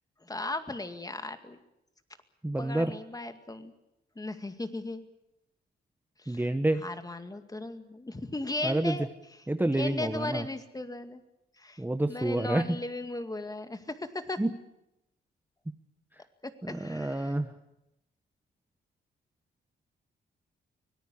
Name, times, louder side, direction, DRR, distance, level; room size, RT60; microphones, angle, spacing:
voice 1, 0.2-1.6 2.6-3.7 4.2-5.0 6.2-6.4 6.8-9.1 9.7-11.2 11.6-11.8 12.1-14.4 16.4-17.3, left 2 dB, 20° left, 8 dB, 2.2 m, -37 dB
voice 2, 2.4-2.9 6.3-6.8 8.6-9.1 9.5-10.5 11.8-12.8 14.4-14.6 16.6-17.5, right 1 dB, 10° right, 8 dB, 1.1 m, -28 dB
24.5 x 18.0 x 8.5 m, 0.89 s
cardioid pair, 80°, 20 cm